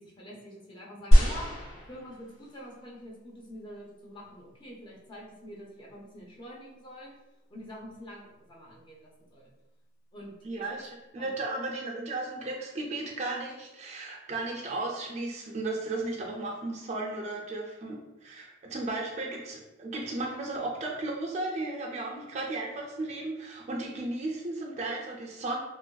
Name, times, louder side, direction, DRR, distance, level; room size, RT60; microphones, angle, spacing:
voice 1, 0.0-7.1 7.5-9.5 10.1-10.9 11.2-11.3, equal, 25° left, -3 dB, 0.5 m, -46 dB
sound 1, 1.1-2.6 3.4-3.5, equal, 80° left, 1.0 m, -23 dB
voice 2, 10.4-25.6, right 2 dB, 35° right, -1 dB, 0.3 m, -35 dB
2.9 x 2.5 x 2.2 m, 0.97 s
head